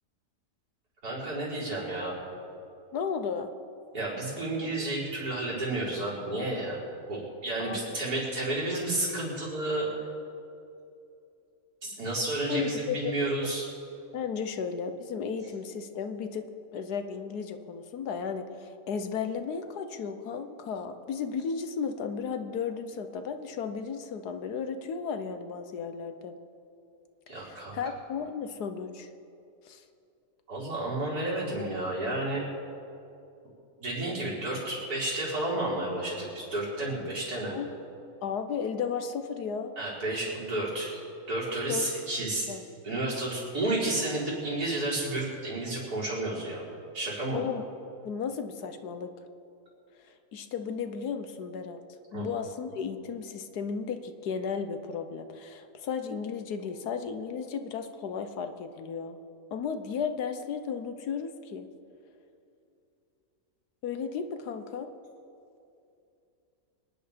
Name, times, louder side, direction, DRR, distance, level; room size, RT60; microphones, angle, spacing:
voice 1, 1.0-2.2 3.9-6.8 7.1-9.9 11.8-13.7 27.3-27.8 30.5-32.5 33.8-37.6 39.8-41.0 41.3-42.5 42.8-46.6 46.9-47.4 52.1-52.3, right 2 dB, 70° right, -7 dB, 5.1 m, -31 dB
voice 2, 2.9-3.5 7.6-8.0 12.5-13.2 14.1-26.3 27.3-29.1 29.6-29.8 37.5-37.7 38.2-39.7 41.7-41.9 42.5-42.6 47.3-47.6 48.0-49.1 50.0-51.8 52.1-59.2 59.5-61.7 63.8-64.9, left 6 dB, 80° left, 8 dB, 1.5 m, -34 dB
24.5 x 10.0 x 5.1 m, 2.6 s
omnidirectional pair, 1.7 m